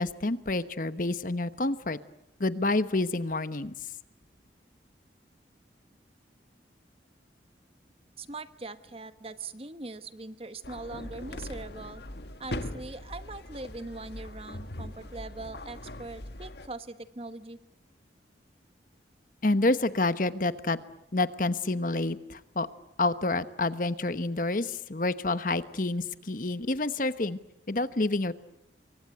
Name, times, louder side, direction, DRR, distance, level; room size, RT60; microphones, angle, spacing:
voice 1, 0.0-2.0 2.4-3.7 19.4-20.8 21.1-22.7 23.0-27.4 27.7-28.4, left 2 dB, 50° left, 13 dB, 1.1 m, -28 dB
voice 2, 8.2-12.0 12.4-17.6, right 3 dB, 35° right, 12 dB, 1.2 m, -41 dB
sound 1, 10.6-16.7, left 1 dB, 65° left, 1.8 m, -41 dB
28.0 x 24.0 x 8.0 m, 0.80 s
head